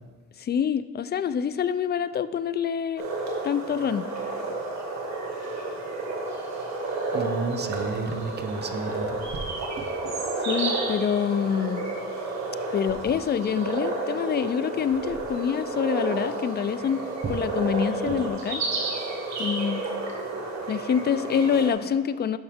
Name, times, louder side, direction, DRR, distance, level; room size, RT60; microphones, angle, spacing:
voice 1, 0.4-3.0 3.4-4.1 10.4-11.8 12.7-17.0 17.3-18.7 19.4-19.9 20.7-22.4, left 8 dB, 35° left, 14 dB, 0.4 m, -26 dB
sound 1, 3.0-21.7, right 3 dB, 65° right, 1.8 m, -31 dB
voice 2, 7.1-9.5 9.8-10.1 17.2-17.4 18.1-18.2, right 4 dB, 35° right, 8 dB, 0.7 m, -32 dB
10.5 x 5.7 x 3.6 m, 1.5 s
cardioid pair, 90°, 30 cm